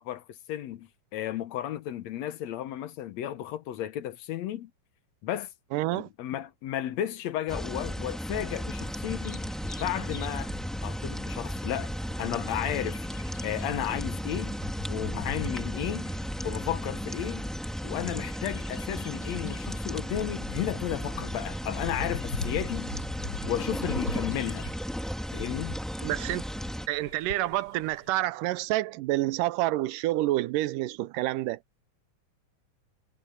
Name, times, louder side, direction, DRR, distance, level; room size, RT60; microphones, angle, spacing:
voice 1, 0.0-4.7 5.2-5.5 5.9-9.4 9.8-10.5 10.8-11.9 12.2-13.0 13.4-14.6 14.9-16.1 16.4-17.5 17.8-22.9 23.5-24.7 25.3-25.8, left 11 dB, 65° left, 2.0 m, -33 dB
voice 2, 5.7-6.1 26.0-26.4 26.9-31.6, right 16 dB, 90° right, 2.3 m, -28 dB
sound 1, 7.5-26.9, equal, ahead, 0.4 m, -34 dB
Bird vocalization bird call bird song, 8.7-28.1, left 4 dB, 40° left, 3.7 m, -43 dB
sound 2, 12.8-18.4, right 2 dB, 60° right, 3.3 m, -53 dB
omnidirectional pair, 3.8 m